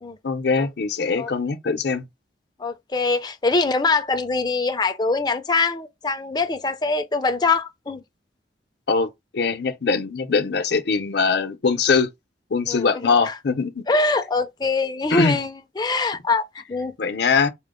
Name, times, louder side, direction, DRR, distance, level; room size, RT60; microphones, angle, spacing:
voice 1, 0.2-2.1 8.9-12.1 12.5-13.8 15.1-15.4 17.0-17.5, left 5 dB, 65° left, 0.7 m, -22 dB
voice 2, 2.6-8.0 12.7-13.4 13.9-16.9, left 3 dB, 25° left, 0.5 m, -23 dB
4.4 x 2.0 x 3.7 m
head